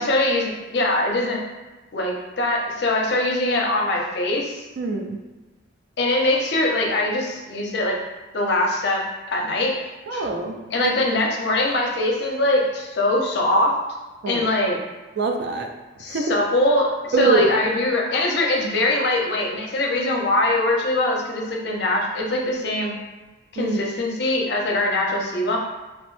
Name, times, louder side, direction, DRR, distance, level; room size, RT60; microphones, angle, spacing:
voice 1, 0.0-1.4 1.9-4.7 6.0-8.0 8.3-9.8 10.1-10.3 10.7-13.8 14.3-14.8 16.0-22.9 23.5-25.6, left 1 dB, 60° left, 0 dB, 0.5 m, -22 dB
voice 2, 4.8-5.2 10.1-10.9 14.2-14.5 15.2-15.7 16.1-16.4 17.1-17.5 23.6-23.8, right 3 dB, 60° right, 3 dB, 0.4 m, -23 dB
3.0 x 2.0 x 3.0 m, 1.2 s
head